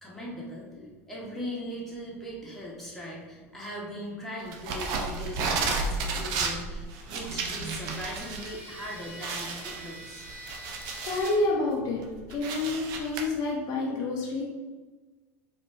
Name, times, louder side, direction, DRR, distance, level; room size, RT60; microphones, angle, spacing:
voice 1, 0.0-0.7 1.1-10.2, equal, 5° left, -5 dB, 1.2 m, -39 dB
sound 1, 4.5-8.5 8.8-8.9 9.2-11.4 11.8-13.2, right 4 dB, 55° right, 0.6 m, -32 dB
sound 2, 6.9-11.4, right 1 dB, 15° right, 1.5 m, -45 dB
voice 2, 11.0-12.0 12.3-14.4, left 2 dB, 55° left, -2 dB, 0.7 m, -28 dB
4.2 x 2.6 x 2.7 m, 1.3 s
hypercardioid pair, 90°, 8 cm